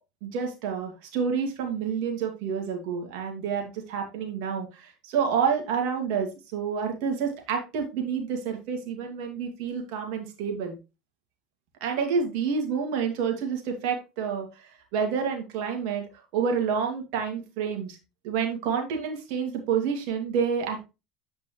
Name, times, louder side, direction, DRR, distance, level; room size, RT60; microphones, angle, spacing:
voice 1, 0.2-10.8 11.8-16.0 16.3-18.0 18.2-20.8, right 6 dB, 70° right, 3 dB, 2.3 m, -29 dB
8.5 x 5.2 x 3.2 m, 0.28 s
supercardioid pair, 90°, 0 cm